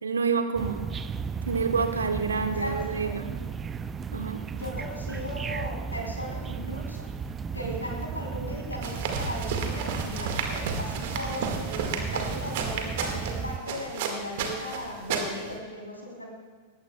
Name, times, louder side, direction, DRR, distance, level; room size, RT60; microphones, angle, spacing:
voice 1, 0.0-0.8 1.4-3.3 4.1-4.4, right 5 dB, 75° right, 7 dB, 1.2 m, -28 dB
sound 1, 0.5-13.6, right 6 dB, 20° right, 0.5 m, -35 dB
voice 2, 2.6-3.3 4.5-7.1 7.5-16.3, left 1 dB, 85° left, -1 dB, 3.6 m, -37 dB
sound 2, 8.8-15.6, right 5 dB, 50° right, 1.9 m, -32 dB
19.0 x 16.0 x 2.3 m, 1.5 s
figure-of-eight pair, 90°, 0 cm